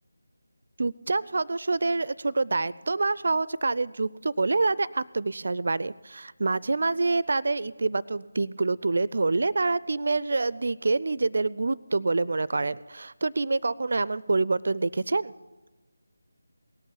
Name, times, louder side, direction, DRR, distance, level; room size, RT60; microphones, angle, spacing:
voice 1, 0.8-15.3, right 3 dB, 55° right, 20 dB, 0.4 m, -26 dB
18.0 x 8.1 x 7.0 m, 1.2 s
figure-of-eight pair, 160°, 0 cm